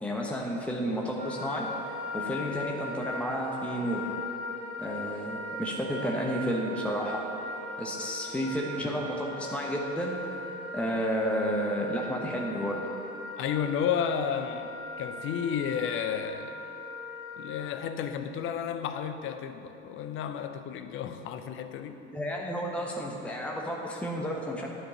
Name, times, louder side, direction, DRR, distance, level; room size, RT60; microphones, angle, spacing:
voice 1, 0.0-1.7 2.1-4.1 4.8-7.2 7.8-10.2 10.7-12.8 22.1-24.7, equal, 5° left, -1 dB, 1.2 m, -31 dB
Wind instrument woodwind instrument, 1.2-17.8, left 1 dB, 60° right, 2.2 m, -39 dB
voice 2, 13.4-14.7 15.0-16.5 17.3-22.0, left 8 dB, 35° left, 8 dB, 0.7 m, -32 dB
10.0 x 5.1 x 7.8 m, 2.9 s
figure-of-eight pair, 70°, 36 cm